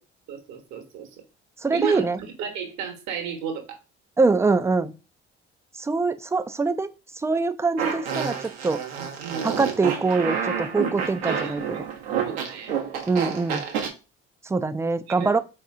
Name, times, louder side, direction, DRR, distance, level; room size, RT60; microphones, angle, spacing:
voice 1, 0.3-1.1 1.7-3.8 9.0-9.6 11.3-11.9 12.2-12.7 15.2-15.4, right 6 dB, 65° right, 1.2 m, -33 dB
voice 2, 1.6-2.2 4.2-4.9 5.7-6.9 7.1-8.8 9.4-11.8 13.1-13.6 14.4-15.4, right 3 dB, 10° right, 0.3 m, -24 dB
Fart, 7.8-13.9, right 7 dB, 80° right, 0.9 m, -29 dB
3.9 x 2.8 x 3.6 m
hypercardioid pair, 55°, 30 cm